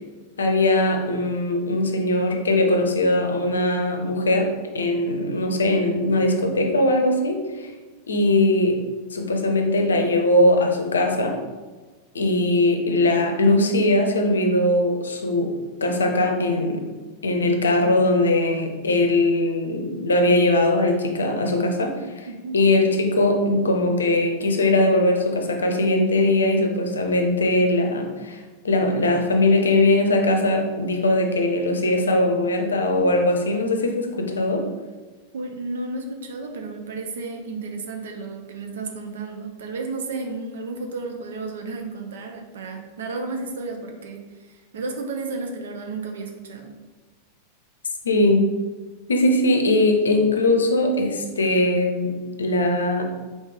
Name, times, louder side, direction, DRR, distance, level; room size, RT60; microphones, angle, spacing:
voice 1, 0.4-4.5 4.7-7.7 8.1-8.8 9.1-11.4 12.1-15.5 15.8-16.8 17.2-22.3 22.5-34.7 48.0-48.5 49.1-53.0, left 1 dB, 70° left, 4 dB, 0.6 m, -20 dB
voice 2, 22.3-22.6 35.3-46.7, right 3 dB, 60° right, 3 dB, 0.6 m, -33 dB
4.2 x 3.2 x 3.4 m, 1.3 s
figure-of-eight pair, 90°, 0 cm